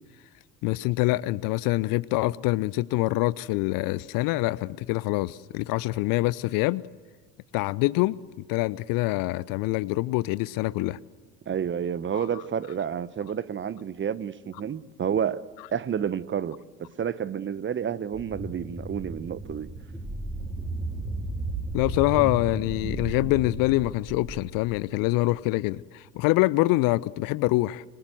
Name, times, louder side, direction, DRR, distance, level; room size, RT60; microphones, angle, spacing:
voice 1, 0.6-6.8 7.5-8.2 8.5-11.0 12.1-12.3 21.7-27.8, left 20 dB, 45° left, 0.7 m, -25 dB
voice 2, 11.5-15.4 15.7-19.7, right 8 dB, 25° right, 1.0 m, -30 dB
sound 1, 18.1-25.2, right 2 dB, 5° right, 3.9 m, -34 dB
27.5 x 24.5 x 8.0 m
figure-of-eight pair, 65°, 48 cm